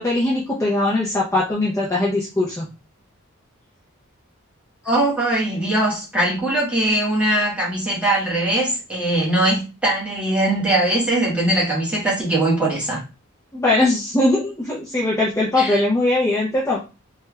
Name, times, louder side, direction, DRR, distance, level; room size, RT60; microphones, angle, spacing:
voice 1, 0.0-2.7 13.5-16.8, left 2 dB, 15° left, -6 dB, 0.6 m, -20 dB
voice 2, 4.8-13.0 15.6-15.8, right 1 dB, 5° right, -5 dB, 1.2 m, -21 dB
3.2 x 2.3 x 3.2 m, 0.30 s
head